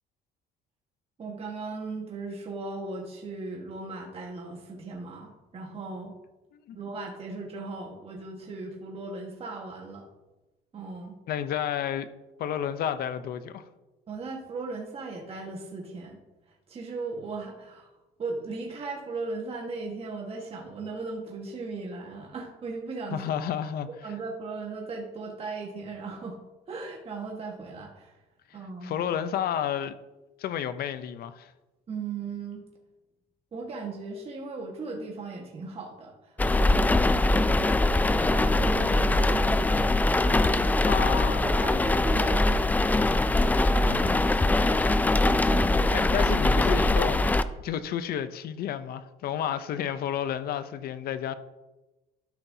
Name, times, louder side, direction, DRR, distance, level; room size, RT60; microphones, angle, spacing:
voice 1, 1.2-6.2 6.7-10.1 10.7-11.2 14.1-16.2 16.5-17.9 18.2-23.2 24.0-26.4 26.7-28.2 28.5-29.1 31.9-32.6 33.5-39.9 40.2-40.7 41.4-43.0 43.6-44.7 45.5-46.1, right 3 dB, 35° right, 1.4 m, -37 dB
voice 2, 11.3-12.1 12.4-13.6 23.1-24.1 28.5-29.9 30.4-31.5 40.9-41.4 45.9-47.3 47.6-51.3, left 9 dB, 65° left, 0.6 m, -31 dB
sound 1, 36.4-47.4, left 2 dB, 10° left, 0.3 m, -22 dB
12.5 x 5.9 x 2.7 m
cardioid pair, 110°, 17 cm